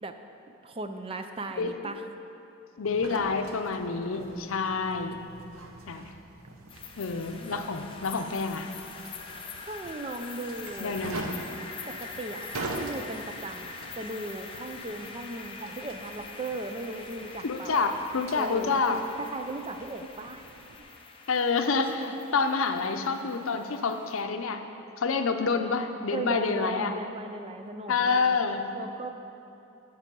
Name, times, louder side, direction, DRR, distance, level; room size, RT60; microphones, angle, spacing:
voice 1, 0.6-2.0 9.7-11.0 11.9-17.8 18.3-18.8 19.2-20.4 22.0-22.1 26.1-28.4 28.7-29.1, right 2 dB, 25° right, 7 dB, 0.4 m, -37 dB
voice 2, 2.8-5.2 5.9-6.1 7.0-8.7 10.8-11.4 17.4-19.0 21.3-24.6 25.0-26.9 27.9-28.6, left 4 dB, 80° left, 7 dB, 0.6 m, -28 dB
sound 1, 2.8-20.8, right 2 dB, 85° right, 0.8 m, -44 dB
sound 2, 6.7-24.2, left 4 dB, 25° left, 0.5 m, -44 dB
8.9 x 4.8 x 7.5 m, 2.8 s
head